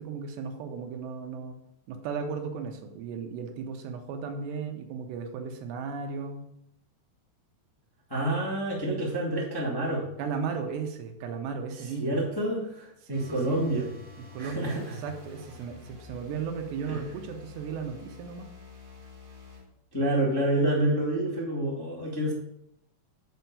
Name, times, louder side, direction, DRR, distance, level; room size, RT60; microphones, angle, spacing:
voice 1, 0.0-1.6 1.9-6.5 10.2-12.2 13.1-13.6 14.2-18.5, right 5 dB, 90° right, 4 dB, 3.2 m, -35 dB
voice 2, 8.1-10.1 12.0-13.9 14.4-14.8 16.9-17.0 19.9-22.3, right 1 dB, 10° left, -5 dB, 1.0 m, -28 dB
sound 1, 13.1-19.7, left 3 dB, 35° right, 1.2 m, -48 dB
8.2 x 4.6 x 6.9 m, 0.78 s
omnidirectional pair, 4.7 m